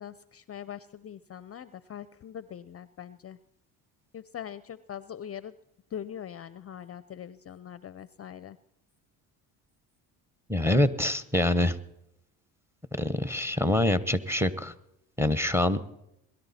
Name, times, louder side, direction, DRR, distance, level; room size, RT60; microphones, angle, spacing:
voice 1, 0.0-3.4 4.1-5.5 5.9-8.6, left 9 dB, 35° left, 16 dB, 0.5 m, -42 dB
voice 2, 10.5-11.8 13.0-14.7 15.2-15.8, left 1 dB, 5° right, 14 dB, 1.0 m, -25 dB
21.5 x 11.5 x 4.2 m, 0.83 s
supercardioid pair, 70°, 43 cm